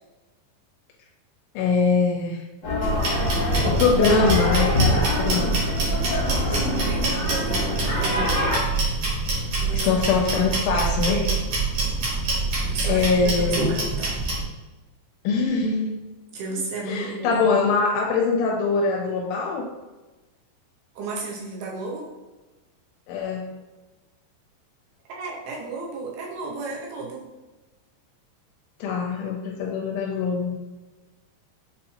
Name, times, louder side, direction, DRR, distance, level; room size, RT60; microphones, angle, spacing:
voice 1, 1.6-2.4 3.6-5.5 6.6-6.8 9.8-11.2 12.9-13.7 15.2-16.0 16.9-19.7 23.1-23.6 28.8-30.6, left 4 dB, 85° left, -1 dB, 2.6 m, -23 dB
sound 1, 2.6-8.6, left 1 dB, 70° left, 1.6 m, -25 dB
sound 2, 2.8-14.4, right 3 dB, 60° right, 1.9 m, -26 dB
voice 2, 6.5-8.3 9.6-10.0 11.1-11.4 12.6-14.2 16.3-17.4 21.0-22.1 25.1-27.3, right 3 dB, 80° right, -2 dB, 2.4 m, -33 dB
6.8 x 2.6 x 2.8 m, 1.1 s
omnidirectional pair, 4.8 m